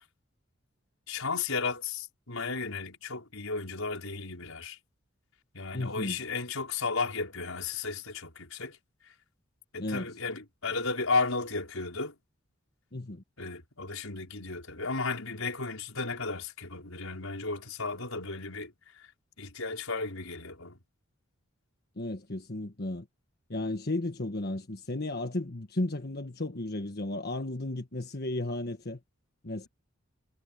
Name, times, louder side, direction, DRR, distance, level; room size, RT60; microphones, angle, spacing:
voice 1, 1.1-4.8 5.5-8.8 9.7-12.1 13.4-19.1 19.4-20.8, left 4 dB, 85° left, 5.4 m, -34 dB
voice 2, 5.7-6.2 9.8-10.1 12.9-13.2 22.0-23.1 23.5-29.0 29.4-29.7, left 2 dB, 50° left, 1.5 m, -34 dB
head